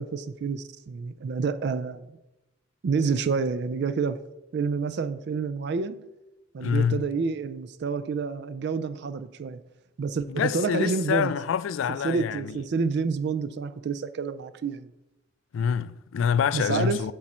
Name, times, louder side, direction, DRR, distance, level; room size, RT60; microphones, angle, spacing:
voice 1, 0.0-2.0 2.8-4.2 4.5-6.1 6.5-9.6 10.0-11.3 12.0-14.9 16.5-17.0, right 5 dB, 60° right, 0.4 m, -28 dB
voice 2, 6.6-7.1 10.3-12.6 15.5-17.1, left 7 dB, 90° left, 0.3 m, -26 dB
9.1 x 6.0 x 4.3 m
head